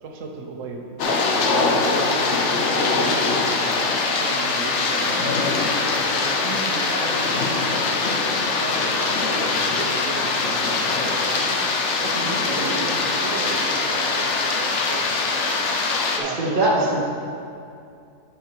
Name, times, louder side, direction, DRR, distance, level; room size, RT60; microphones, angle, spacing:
voice 1, 0.0-5.7 6.2-11.6 11.9-15.6 16.2-17.0, right 4 dB, 70° right, 1 dB, 1.2 m, -35 dB
sound 1, 1.0-16.2, left 3 dB, 60° left, 0.9 m, -22 dB
voice 2, 16.2-17.0, right 1 dB, 40° right, -5 dB, 1.3 m, -22 dB
8.8 x 4.7 x 4.5 m, 2.4 s
omnidirectional pair, 1.4 m